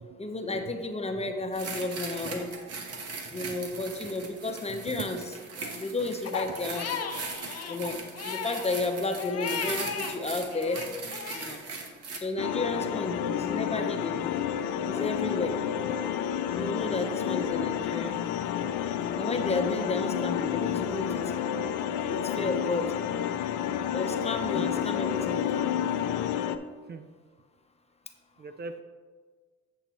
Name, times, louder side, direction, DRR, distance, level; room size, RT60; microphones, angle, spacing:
voice 1, 0.2-2.5 3.3-5.2 5.7-6.9 7.7-10.8 11.3-11.6 12.2-14.2 14.9-15.6 16.6-18.1 19.1-21.2 22.1-22.9 23.9-25.7, left 2 dB, 20° left, 5 dB, 0.8 m, -32 dB
sound 1, 1.5-12.2, right 4 dB, 55° right, 1.1 m, -39 dB
voice 2, 3.2-3.8 4.7-5.1 5.6-5.7 24.6-24.7 26.9-27.0 28.4-28.8, right 5 dB, 35° right, 9 dB, 0.4 m, -41 dB
Crying sobbing, 6.2-10.2 10.5-11.5, left 7 dB, 55° left, 0.7 m, -36 dB
sound 2, 12.4-26.6, left 9 dB, 90° left, 0.5 m, -30 dB
8.2 x 7.2 x 3.0 m, 1.5 s
cardioid pair, 90°, 30 cm